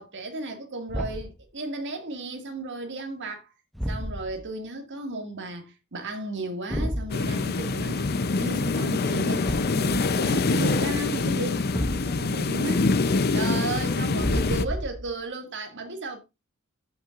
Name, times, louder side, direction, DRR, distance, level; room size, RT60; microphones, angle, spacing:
voice 1, 0.0-3.5 3.9-8.1 8.4-11.6 11.9-12.9 13.3-16.2, right 2 dB, 55° right, 2.1 m, -34 dB
Thump thud, 0.9-1.4 3.7-4.5 6.7-7.2 9.4-9.9 11.7-12.4 14.2-15.1, equal, ahead, 0.7 m, -30 dB
sound 1, 7.1-14.6, left 3 dB, 45° left, 0.6 m, -25 dB
14.0 x 5.9 x 2.5 m
head